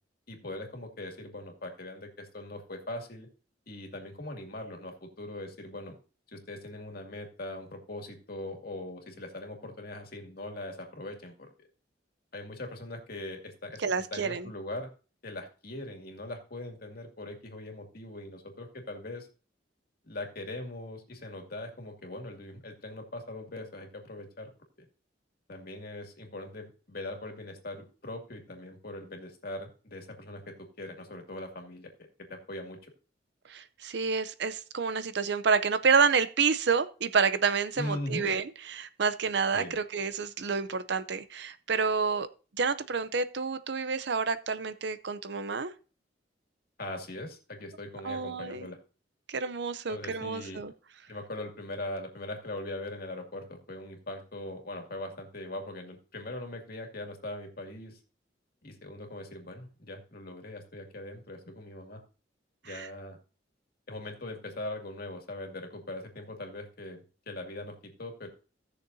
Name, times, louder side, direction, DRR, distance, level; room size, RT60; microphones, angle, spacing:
voice 1, 0.3-3.3 3.7-5.9 6.3-11.5 12.3-13.8 14.1-14.9 15.2-19.3 20.0-24.5 25.5-31.9 32.3-32.9 37.8-38.3 39.5-39.8 46.8-48.8 49.9-50.6 51.1-58.0 58.6-62.0 62.6-63.2 63.9-68.3, left 1 dB, 55° left, 2 dB, 2.4 m, -41 dB
voice 2, 13.8-14.5 33.5-42.3 42.6-45.7 48.0-48.7 49.3-50.7 62.7-62.9, right 5 dB, 65° right, 12 dB, 0.6 m, -29 dB
17.5 x 6.6 x 2.7 m, 0.36 s
head